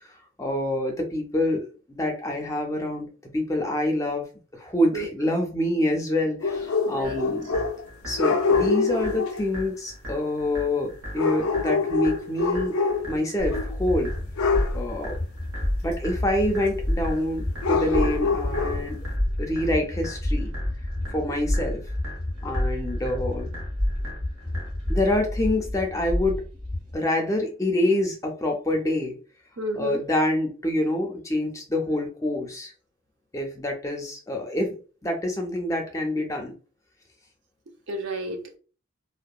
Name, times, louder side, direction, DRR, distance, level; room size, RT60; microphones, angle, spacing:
voice 1, 0.0-3.1 3.3-4.2 4.5-7.5 8.0-12.7 13.1-14.1 14.7-15.2 15.8-19.0 19.4-20.5 21.1-21.8 22.4-23.5 24.9-26.4 26.9-29.2 29.7-32.7 33.3-36.5, left 1 dB, 15° left, 2 dB, 0.4 m, -26 dB
sound 1, 6.4-7.9 8.2-9.4 11.2-13.2 13.5-13.8 14.4-14.8 17.6-18.9, left 4 dB, 85° left, 0.4 m, -25 dB
voice 2, 6.9-7.3 29.6-30.0 37.9-38.6, right 1 dB, 60° right, 3 dB, 0.6 m, -31 dB
sound 2, 7.0-25.0, equal, 80° right, 1.0 m, -40 dB
sound 3, 13.4-27.0, left 1 dB, 30° right, 1.3 m, -29 dB
2.7 x 2.1 x 2.3 m, 0.37 s
head